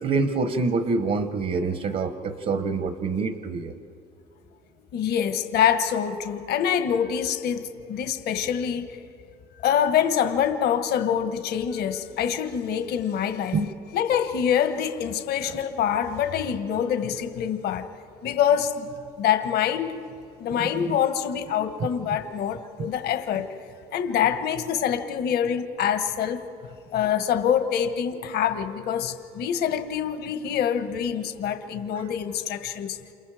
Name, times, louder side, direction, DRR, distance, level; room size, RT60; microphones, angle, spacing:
voice 1, 0.0-3.7 13.5-13.7 20.8-20.9 22.8-22.9, right 4 dB, 50° right, 9 dB, 1.2 m, -26 dB
voice 2, 4.9-9.0 9.6-13.6 13.9-17.9 18.2-18.9 19.2-19.9 20.4-23.5 23.9-26.4 26.9-33.0, left 8 dB, 70° left, 8 dB, 1.5 m, -25 dB
29.0 x 28.0 x 5.1 m, 2.6 s
cardioid pair, 110°, 17 cm